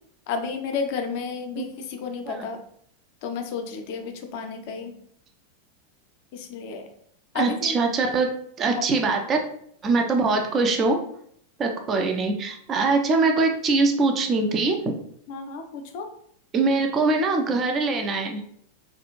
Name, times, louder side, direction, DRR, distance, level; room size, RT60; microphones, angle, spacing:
voice 1, 0.3-2.6 3.2-4.9 6.3-6.8 7.3-7.8 8.0-8.1 8.7-8.8 15.3-16.1, left 5 dB, 45° left, 4 dB, 0.5 m, -31 dB
voice 2, 7.3-8.3 8.6-9.4 9.8-11.0 11.6-14.9 16.5-18.4, right 3 dB, 25° right, 3 dB, 0.4 m, -22 dB
3.1 x 2.4 x 3.0 m, 0.66 s
figure-of-eight pair, 90°, 0 cm